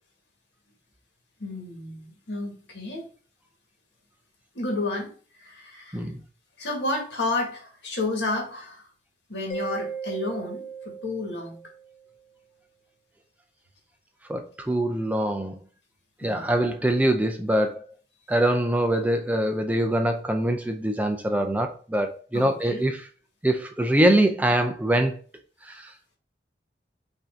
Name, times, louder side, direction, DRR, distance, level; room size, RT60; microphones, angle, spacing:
voice 1, 1.4-3.1 4.5-5.1 5.3-6.1 6.6-8.9 9.3-11.6 16.2-16.4 22.3-22.8, left 2 dB, 75° left, 0 dB, 1.8 m, -31 dB
Mallet percussion, 9.5-12.0, right 5 dB, 30° left, 1.7 m, -36 dB
voice 2, 14.3-15.6 16.2-17.9 18.3-23.1 23.4-25.2 25.6-25.9, right 1 dB, 10° right, 5 dB, 0.4 m, -24 dB
5.6 x 2.7 x 3.5 m, 0.40 s
head